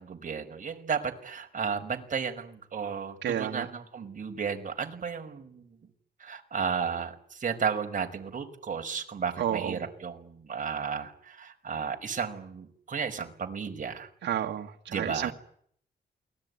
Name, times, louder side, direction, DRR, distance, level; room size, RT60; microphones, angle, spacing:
voice 1, 0.0-5.8 6.2-14.1 14.9-15.3, right 6 dB, 45° right, 4 dB, 5.2 m, -33 dB
voice 2, 3.2-3.7 9.4-9.8 14.2-15.3, right 10 dB, 90° right, 2 dB, 1.9 m, -31 dB
28.5 x 21.0 x 9.7 m, 0.65 s
cardioid pair, 85°, 18 cm